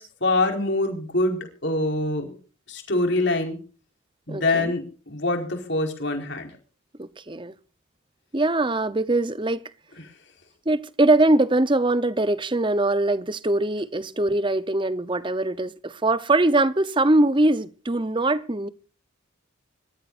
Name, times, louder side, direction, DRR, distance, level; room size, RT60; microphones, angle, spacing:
voice 1, 0.0-2.3 2.7-3.6 4.3-6.5, left 2 dB, 55° left, 4.9 m, -25 dB
voice 2, 4.3-4.7 7.0-7.5 8.3-9.6 10.7-18.7, right 2 dB, 25° right, 0.9 m, -22 dB
25.5 x 13.5 x 2.6 m
head